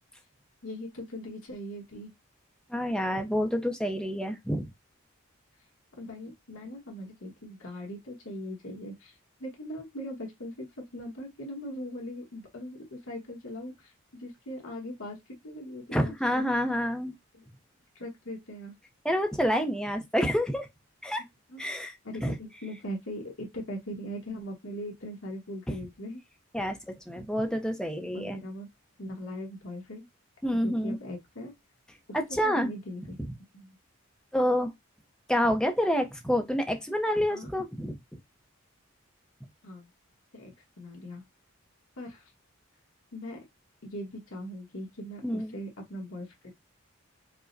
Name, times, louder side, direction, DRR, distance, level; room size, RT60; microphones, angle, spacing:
voice 1, 0.6-2.1 6.0-15.2 15.4-16.5 17.3-17.4 17.9-18.8 21.5-21.6 22.0-26.2 27.1-27.3 28.1-28.7 29.0-30.0 30.5-31.5 32.4-33.2 33.5-33.8 37.3-37.5 39.6-39.9 40.3-41.2 42.0-42.3 43.1-43.4 43.8-46.5, equal, 70° left, 1.1 m, -40 dB
voice 2, 2.7-4.7 15.9-17.2 19.0-20.7 21.0-21.2 21.6-21.9 22.2-22.4 26.5-28.4 30.4-31.0 32.1-32.7 34.3-34.7 35.3-37.9 45.2-45.5, equal, 5° left, 0.5 m, -28 dB
4.8 x 2.1 x 2.5 m
head